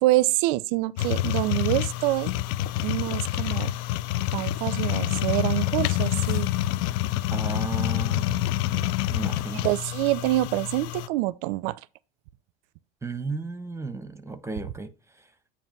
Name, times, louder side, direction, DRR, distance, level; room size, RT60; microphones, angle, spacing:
voice 1, 0.0-2.3 2.8-3.7 4.3-6.5 9.5-11.8, right 18 dB, 65° right, 0.5 m, -26 dB
sound 1, 1.0-11.1, left 14 dB, 55° left, 0.5 m, -27 dB
voice 2, 7.3-9.7 13.0-14.9, right 4 dB, 10° right, 1.1 m, -35 dB
8.8 x 3.0 x 5.8 m
hypercardioid pair, 75°, 30 cm